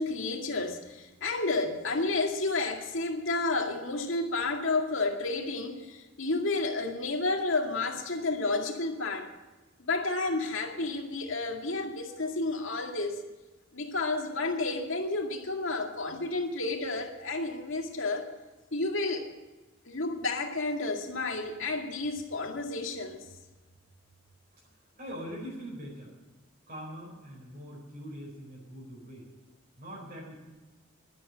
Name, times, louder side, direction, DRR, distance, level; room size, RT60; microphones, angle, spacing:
voice 1, 0.0-9.3 9.8-13.2 13.7-18.3 18.7-19.3 19.9-23.3, left 3 dB, 65° left, 3 dB, 2.1 m, -31 dB
voice 2, 24.9-26.2 26.7-29.3 29.8-30.4, equal, 45° right, -3 dB, 4.5 m, -42 dB
12.0 x 12.0 x 8.7 m, 1.2 s
head